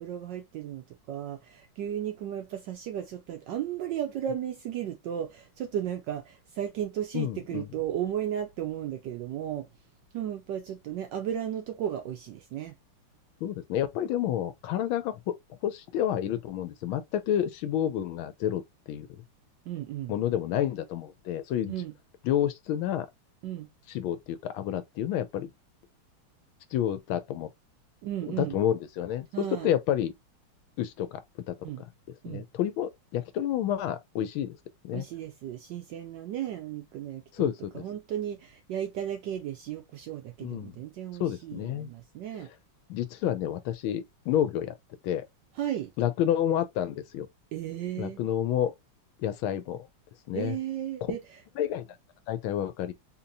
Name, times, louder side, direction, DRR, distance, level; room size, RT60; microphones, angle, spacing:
voice 1, 0.0-9.7 10.1-12.8 19.7-20.1 21.7-21.9 23.4-23.7 28.0-28.6 29.3-29.7 31.6-31.8 32.2-32.4 34.9-42.5 45.5-45.9 47.5-48.2 50.3-51.2, right 10 dB, 75° right, 1.0 m, -35 dB
voice 2, 7.1-7.7 13.4-15.3 15.6-18.6 18.9-19.1 20.1-21.7 22.2-23.1 23.9-25.5 26.7-27.5 28.3-29.3 29.6-30.1 30.8-31.2 31.5-31.6 32.3-34.6 34.8-35.1 37.3-37.8 40.4-40.8 41.2-41.9 42.9-44.7 45.0-45.2 46.0-47.3 48.0-48.7 49.2-49.9 50.3-50.5 51.1-51.2 51.6-51.9 52.3-52.9, left 10 dB, 80° left, 1.4 m, -29 dB
4.0 x 2.9 x 2.6 m
omnidirectional pair, 2.4 m